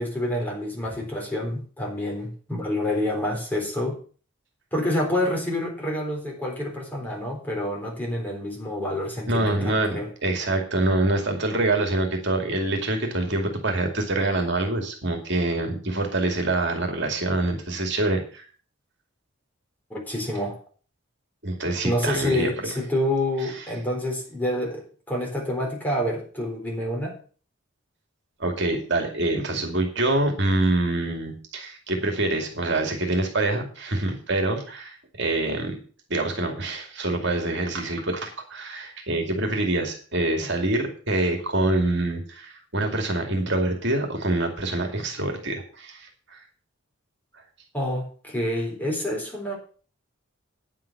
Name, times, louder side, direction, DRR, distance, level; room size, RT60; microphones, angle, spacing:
voice 1, 0.0-4.0 4.7-10.1 19.9-20.6 21.8-27.2 47.7-49.6, left 1 dB, 10° left, -1 dB, 3.9 m, -28 dB
voice 2, 9.3-18.5 21.4-22.7 23.5-23.7 28.4-35.8 36.1-46.4, right 2 dB, 55° right, 3 dB, 2.4 m, -25 dB
9.6 x 7.6 x 7.3 m, 0.41 s
head